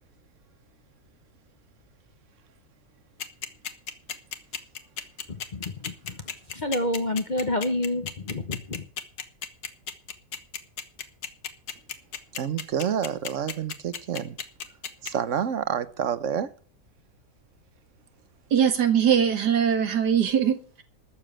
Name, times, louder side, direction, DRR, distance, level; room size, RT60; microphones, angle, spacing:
sound 1, 3.2-15.1, left 8 dB, 70° left, 1.7 m, -34 dB
voice 1, 5.3-6.2 6.5-8.8, left 1 dB, 35° left, 0.9 m, -29 dB
voice 2, 12.3-14.4 15.0-16.5, right 8 dB, 55° right, 1.2 m, -28 dB
voice 3, 18.5-20.8, right 8 dB, 80° right, 2.2 m, -22 dB
13.0 x 7.3 x 8.7 m
omnidirectional pair, 1.8 m